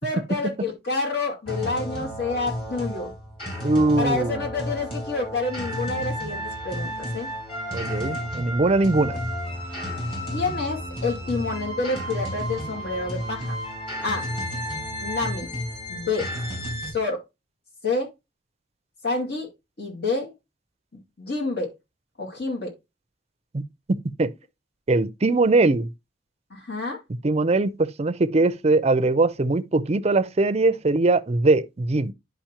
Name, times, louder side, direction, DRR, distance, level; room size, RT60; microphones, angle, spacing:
voice 1, 0.0-3.1 4.0-7.3 10.3-13.5 14.0-14.3 15.0-15.5 15.9-16.2 16.9-17.2 17.8-18.1 19.0-19.5 19.8-20.3 21.2-21.7 22.2-22.7 26.5-27.0, left 3 dB, 60° left, 2.3 m, -28 dB
sound 1, 1.5-16.9, equal, 30° left, 4.8 m, -32 dB
voice 2, 3.6-4.4 7.7-9.2 23.5-23.6 23.9-24.3 24.9-25.9 27.2-32.1, right 2 dB, 35° right, 0.5 m, -21 dB
10.0 x 5.2 x 2.9 m
head